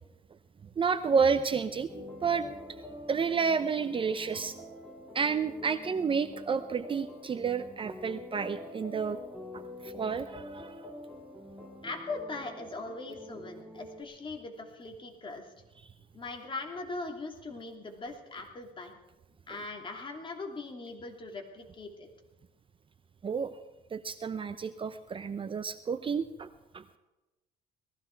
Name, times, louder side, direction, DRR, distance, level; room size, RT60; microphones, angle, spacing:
voice 1, 0.8-2.8 3.1-4.6 5.1-9.2 9.5-10.8 23.2-23.5 23.9-26.5 26.7-27.0, right 6 dB, 30° right, 11 dB, 0.7 m, -30 dB
sound 1, 1.9-14.0, left 1 dB, ahead, 4.2 m, -46 dB
voice 2, 11.8-15.4 16.1-18.9 19.5-22.1, left 3 dB, 30° left, 2 dB, 2.8 m, -40 dB
19.0 x 15.0 x 4.6 m, 1.0 s
cardioid pair, 110°, 17 cm